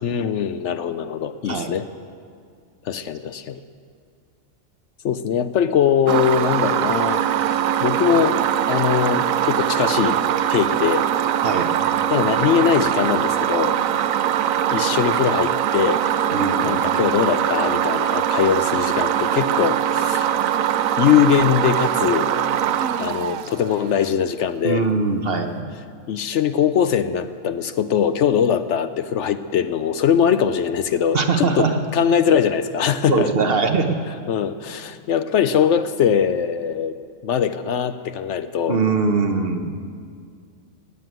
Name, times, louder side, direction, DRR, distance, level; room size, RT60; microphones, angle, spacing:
voice 1, 0.0-1.8 2.9-3.6 5.0-7.2 7.8-8.4 8.7-10.2 10.5-11.1 12.1-13.8 14.7-16.1 16.6-20.3 21.0-22.3 23.0-24.9 26.1-33.3 34.3-37.0 37.2-38.8, left 8 dB, 70° left, 12 dB, 0.9 m, -21 dB
sound 1, 6.1-24.0, right 10 dB, 85° right, 1.0 m, -22 dB
voice 2, 16.3-16.8 24.6-25.7 31.1-31.8 33.1-34.0 38.7-39.7, right 4 dB, 50° right, 5 dB, 1.2 m, -21 dB
15.0 x 9.5 x 9.1 m, 2.2 s
omnidirectional pair, 1.4 m